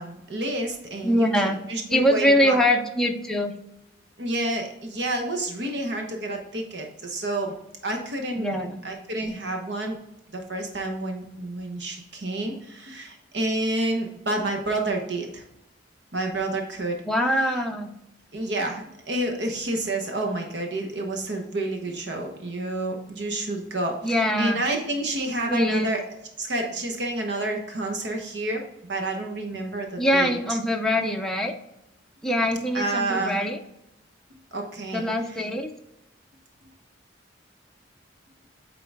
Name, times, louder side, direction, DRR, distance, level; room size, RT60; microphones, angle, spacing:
voice 1, 0.0-1.3 1.7-2.6 4.2-7.5 7.8-10.0 10.3-15.4 16.1-17.0 18.3-26.0 26.4-28.6 28.9-30.3 32.7-33.4 34.5-35.1, right 2 dB, 65° right, 2 dB, 1.1 m, -29 dB
voice 2, 1.0-1.6 1.9-3.5 8.3-8.8 17.0-17.9 24.0-24.6 25.5-25.9 30.0-31.5 32.2-33.6 34.9-35.7, equal, 5° left, 1 dB, 0.5 m, -23 dB
8.6 x 3.9 x 3.5 m, 0.83 s
head